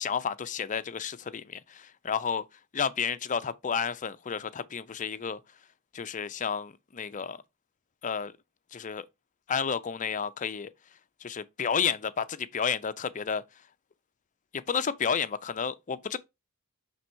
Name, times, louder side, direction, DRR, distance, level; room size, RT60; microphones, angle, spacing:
voice 1, 0.0-2.4 2.7-5.4 5.9-7.4 8.0-8.3 8.7-9.1 9.5-10.7 11.2-13.4 14.5-16.2, left 6 dB, 35° left, 0.5 m, -31 dB
6.5 x 3.4 x 4.4 m
head